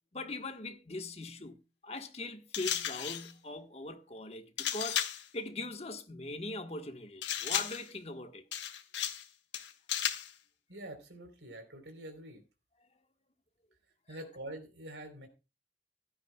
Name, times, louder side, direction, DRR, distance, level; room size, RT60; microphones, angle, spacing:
voice 1, 0.1-8.4, left 2 dB, 35° left, 1.4 m, -41 dB
sound 1, 2.5-3.3 4.6-5.3 7.2-7.9 8.5-9.3 9.5-10.3, left 10 dB, 80° left, 1.4 m, -34 dB
voice 2, 10.7-12.4 14.1-15.3, right 1 dB, 85° right, 3.8 m, -45 dB
15.5 x 12.5 x 2.3 m
head